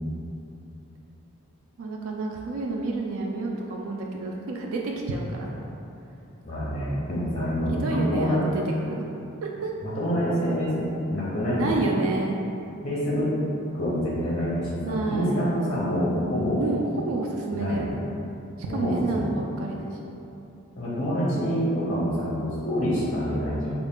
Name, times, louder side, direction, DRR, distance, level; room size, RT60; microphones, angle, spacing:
voice 1, 1.8-5.5 7.8-9.1 9.4-9.7 11.6-12.4 14.8-15.4 16.6-18.0 18.6-20.0, right 3 dB, 75° right, -1 dB, 0.3 m, -29 dB
voice 2, 6.4-8.4 9.8-11.8 12.8-13.3 13.7-16.6 17.5-17.8 18.7-19.3 20.8-23.7, equal, 30° left, -7 dB, 0.7 m, -26 dB
3.6 x 2.4 x 3.6 m, 2.8 s
head